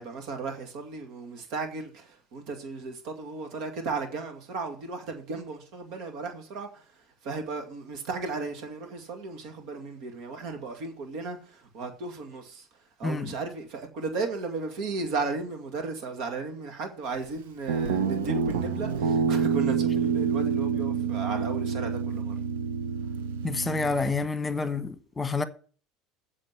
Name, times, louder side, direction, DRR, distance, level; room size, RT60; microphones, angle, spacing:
voice 1, 0.0-12.7 13.0-22.3, right 3 dB, 65° right, 2.2 m, -35 dB
Guitar, 17.7-24.2, right 6 dB, 85° right, 0.9 m, -27 dB
voice 2, 23.4-25.4, left 4 dB, 15° left, 1.3 m, -28 dB
7.8 x 6.3 x 7.8 m
hypercardioid pair, 85°, 0 cm